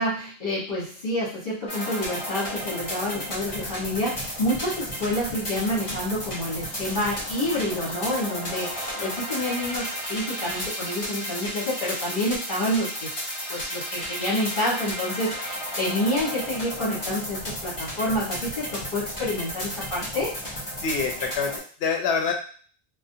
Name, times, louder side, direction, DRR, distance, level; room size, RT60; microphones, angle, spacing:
voice 1, 0.0-13.1 13.5-20.3, left 1 dB, 55° left, -8 dB, 1.3 m, -28 dB
sound 1, 1.7-21.6, equal, 35° left, 0.8 m, -33 dB
sound 2, 5.7-6.0 6.6-10.8, equal, 10° left, 1.2 m, -43 dB
voice 2, 20.8-22.3, left 5 dB, 80° left, 3 dB, 0.8 m, -27 dB
2.5 x 2.1 x 2.6 m, 0.43 s
omnidirectional pair, 1.0 m